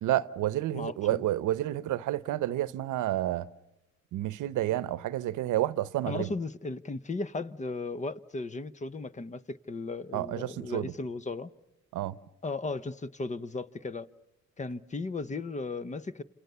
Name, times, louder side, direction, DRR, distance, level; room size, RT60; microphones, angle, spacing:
voice 1, 0.0-3.5 4.1-6.3 10.1-10.9 11.9-12.2, right 14 dB, 85° right, 0.9 m, -30 dB
voice 2, 0.7-1.2 6.1-11.5 12.4-14.1 14.6-16.2, left 3 dB, 25° left, 0.9 m, -36 dB
28.5 x 28.0 x 6.9 m
cardioid pair, 90°, 30 cm